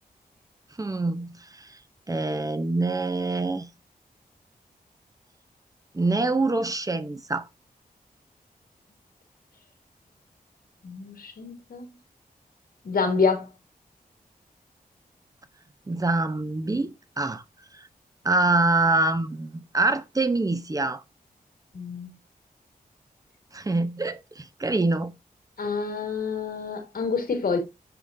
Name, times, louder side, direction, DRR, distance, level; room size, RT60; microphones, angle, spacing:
voice 1, 0.8-1.8 2.1-3.7 5.9-7.4 15.9-17.4 17.7-17.9 18.2-21.0 23.5-25.1, right 2 dB, 20° right, 0.7 m, -25 dB
voice 2, 10.8-11.9 12.8-13.5 21.7-22.2 25.6-27.6, left 5 dB, 75° left, 1.9 m, -27 dB
6.8 x 5.5 x 2.6 m
wide cardioid pair, 110°, 15 cm